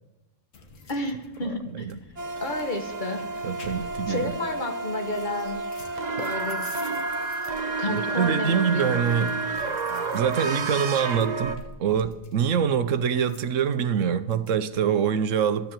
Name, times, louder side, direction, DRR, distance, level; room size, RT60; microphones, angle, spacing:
sound 1, 0.5-14.6, left 3 dB, 90° left, 1.7 m, -49 dB
voice 1, 0.9-1.9 2.4-3.2 4.1-5.6 6.2-6.6 7.8-8.9, left 2 dB, 40° left, 1.6 m, -31 dB
sound 2, 2.2-11.6, right 3 dB, 40° right, 0.9 m, -30 dB
voice 2, 3.4-4.3 7.9-9.4 10.1-11.5 11.8-15.7, right 7 dB, 85° right, 1.2 m, -25 dB
13.0 x 10.5 x 7.6 m
omnidirectional pair, 1.3 m